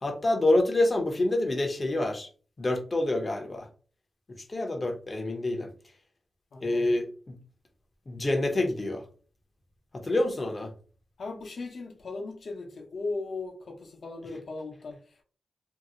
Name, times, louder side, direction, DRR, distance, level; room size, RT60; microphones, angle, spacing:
voice 1, 0.0-2.3 2.6-3.7 4.4-5.7 6.6-7.4 8.1-9.0 9.9-10.7, left 2 dB, 35° left, 0.7 m, -27 dB
voice 2, 6.5-7.0 11.2-15.2, left 3 dB, 65° left, 0.9 m, -38 dB
2.8 x 2.0 x 3.7 m
wide cardioid pair, 85°, 0 cm